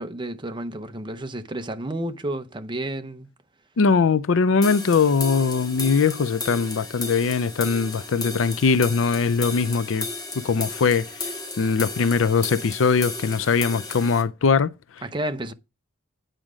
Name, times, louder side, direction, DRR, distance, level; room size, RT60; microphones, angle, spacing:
voice 1, 0.0-3.3 15.0-15.5, right 1 dB, 25° right, 0.8 m, -31 dB
voice 2, 3.8-10.1 10.4-11.3 11.6-14.7, left 5 dB, 85° left, 0.5 m, -21 dB
sound 1, 4.6-14.2, left 3 dB, 20° left, 2.1 m, -34 dB
9.0 x 4.9 x 6.2 m
head